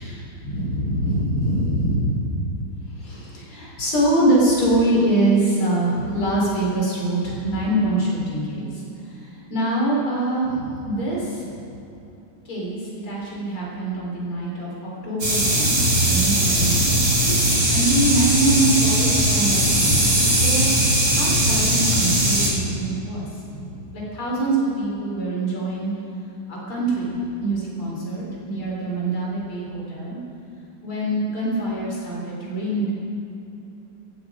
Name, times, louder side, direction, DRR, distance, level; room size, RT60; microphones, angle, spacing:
voice 1, 0.0-2.3 2.9-11.7 12.4-15.8 16.1-17.0 17.2-17.3 17.7-20.7 21.1-25.9 26.5-30.2 30.8-32.9, right 1 dB, 85° left, -4 dB, 5.0 m, -24 dB
sound 1, 15.2-22.5, right 1 dB, 45° right, 3.9 m, -19 dB
17.5 x 14.5 x 5.0 m, 2.8 s
omnidirectional pair, 2.3 m